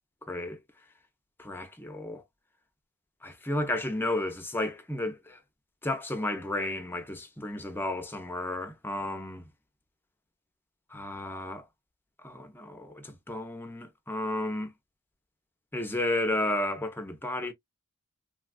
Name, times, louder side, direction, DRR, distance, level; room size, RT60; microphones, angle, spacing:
voice 1, 0.3-0.6 1.4-2.2 3.2-5.4 5.8-9.4 10.9-11.6 12.2-14.7 15.7-17.5, left 1 dB, 10° left, 0.6 m, -32 dB
3.3 x 2.3 x 2.2 m
head